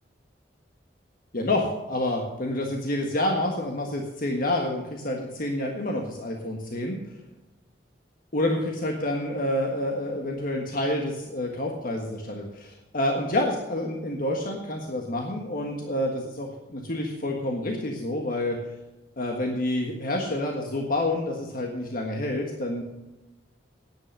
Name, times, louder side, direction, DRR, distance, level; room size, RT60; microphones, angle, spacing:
voice 1, 1.3-7.0 8.3-18.6 19.2-22.8, left 1 dB, 55° left, 1 dB, 1.5 m, -28 dB
10.0 x 8.9 x 6.6 m, 1.0 s
head